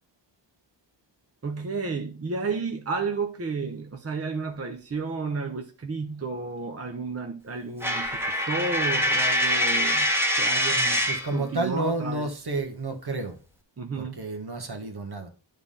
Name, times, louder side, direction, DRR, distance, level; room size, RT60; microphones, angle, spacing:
voice 1, 1.4-10.1 10.4-11.0 11.3-12.3 13.8-14.2, right 4 dB, 35° right, 0.8 m, -32 dB
Coin (dropping), 7.8-11.3, equal, 5° right, 1.3 m, -24 dB
voice 2, 10.7-13.4 13.9-15.3, right 2 dB, 60° right, 1.6 m, -31 dB
9.5 x 3.6 x 5.5 m
wide cardioid pair, 90°, 44 cm